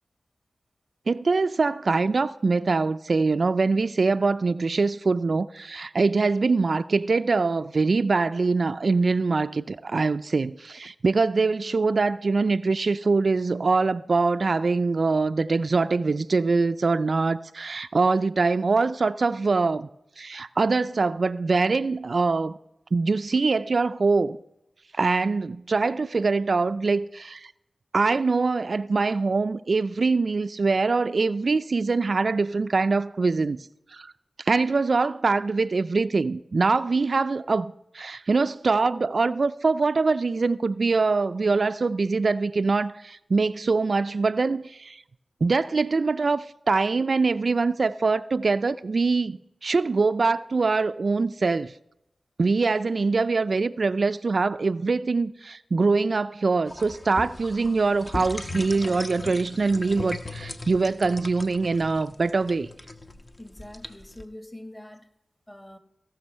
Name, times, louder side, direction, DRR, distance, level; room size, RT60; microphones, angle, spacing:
voice 1, 1.1-19.9 20.2-22.6 22.9-24.4 24.9-27.5 27.9-33.6 33.9-34.1 34.5-45.0 45.4-51.7 52.4-62.7, right 4 dB, 60° right, 0.3 m, -23 dB
sound 1, 56.7-64.2, left 2 dB, 40° left, 1.0 m, -38 dB
voice 2, 63.4-65.1 65.5-65.8, left 1 dB, 20° left, 1.4 m, -44 dB
16.5 x 6.2 x 5.4 m
cardioid pair, 50°, 0 cm